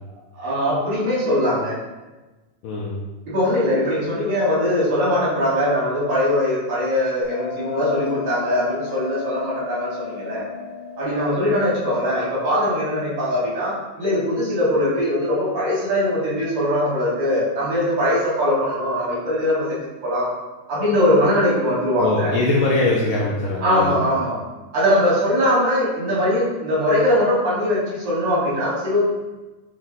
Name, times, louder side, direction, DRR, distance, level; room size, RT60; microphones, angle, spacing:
voice 1, 0.3-1.8 3.3-10.4 11.0-19.8 20.0-20.3 20.7-22.4 23.6-24.4 24.7-29.1, left 1 dB, 80° right, -8 dB, 1.0 m, -21 dB
voice 2, 2.6-3.0 22.0-23.9, left 2 dB, 85° left, -4 dB, 1.9 m, -21 dB
Bell, 7.2-12.3, left 6 dB, 65° left, 1.1 m, -34 dB
6.2 x 2.2 x 3.6 m, 1.2 s
omnidirectional pair, 4.1 m